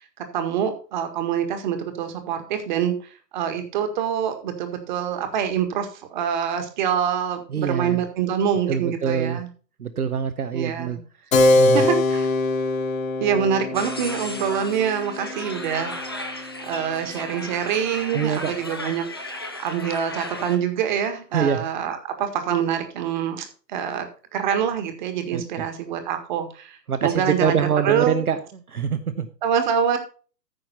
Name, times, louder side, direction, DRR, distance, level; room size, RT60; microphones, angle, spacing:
voice 1, 0.3-9.5 10.5-11.0 11.7-12.3 13.2-19.0 19.6-24.1 24.3-27.6 27.8-28.2 29.4-30.0, right 8 dB, 30° right, 7 dB, 1.7 m, -25 dB
voice 2, 7.5-8.0 8.7-9.4 9.8-11.0 11.6-11.9 18.1-18.5 21.3-21.7 25.3-25.7 26.9-28.4 28.7-29.3, right 7 dB, 60° right, 10 dB, 1.0 m, -24 dB
Keyboard (musical), 11.3-17.4, left 2 dB, 55° left, 1.6 m, -23 dB
sound 1, 13.7-20.6, left 1 dB, 15° left, 0.5 m, -35 dB
14.0 x 5.9 x 4.2 m, 0.38 s
figure-of-eight pair, 125°, 50 cm